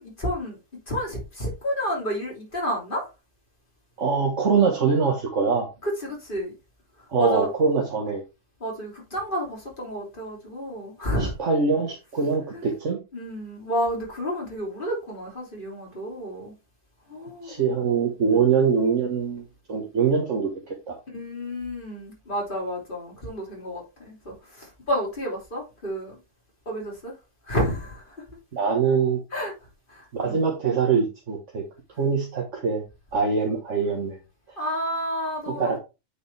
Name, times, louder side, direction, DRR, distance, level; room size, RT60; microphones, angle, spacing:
voice 1, 0.0-3.1 5.8-6.6 7.2-7.5 8.6-11.3 12.5-12.7 13.1-16.6 17.1-17.7 18.3-18.5 21.1-26.2 26.7-27.2 27.4-28.2 29.3-29.5 29.9-30.4 34.6-35.8, equal, 40° left, 3.4 m, -30 dB
voice 2, 4.0-5.7 7.1-8.2 11.2-13.0 17.4-20.5 20.9-21.0 28.5-29.2 30.1-31.6 32.0-32.8 33.1-34.2 35.5-35.8, right 5 dB, 70° right, 1.8 m, -23 dB
8.7 x 5.0 x 3.3 m
omnidirectional pair, 1.3 m